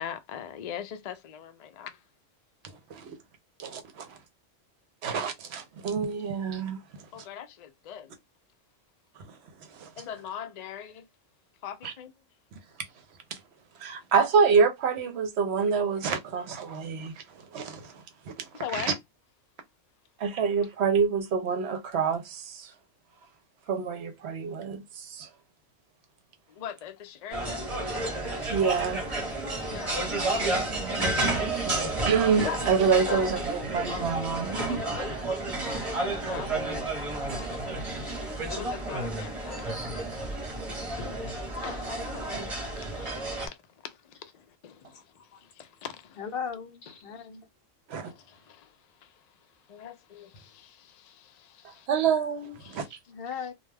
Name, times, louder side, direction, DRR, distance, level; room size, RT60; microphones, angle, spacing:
voice 1, 0.0-2.0 7.1-8.2 10.0-11.1 11.6-12.1 18.5-18.9 26.5-27.7 29.6-30.1 32.4-32.6 33.0-33.4 34.6-35.1 36.3-36.8 37.2-37.6 38.5-39.7 40.7-43.6 43.8-45.0 45.4-46.2 47.1-47.3 48.0-48.8 49.0-49.3 49.7-51.9 52.6-52.9, left 9 dB, 85° left, 0.3 m, -41 dB
voice 2, 3.6-4.2 5.0-7.1 9.3-9.4 9.7-9.9 11.8-11.9 13.3-13.4 13.8-17.2 17.5-18.9 20.2-22.7 23.7-25.3 28.5-29.2 31.4-31.8 32.1-34.8 42.3-42.5 47.9-48.1 51.9-53.0, right 6 dB, 65° right, 0.8 m, -27 dB
sound 1, 27.3-43.5, right 2 dB, 30° right, 0.9 m, -31 dB
voice 3, 46.2-47.5 50.3-50.5 53.1-53.5, left 6 dB, 55° left, 0.8 m, -37 dB
2.3 x 2.2 x 3.2 m
omnidirectional pair, 1.3 m